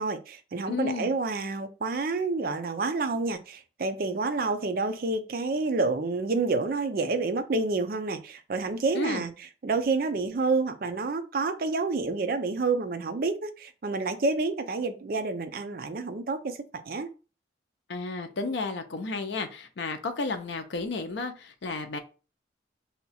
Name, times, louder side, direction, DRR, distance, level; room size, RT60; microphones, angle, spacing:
voice 1, 0.0-9.3 9.6-17.1, right 3 dB, 50° right, 0.4 m, -29 dB
voice 2, 0.7-1.1 8.9-9.2 17.9-22.0, left 3 dB, 70° left, 0.5 m, -32 dB
2.8 x 2.3 x 4.1 m
head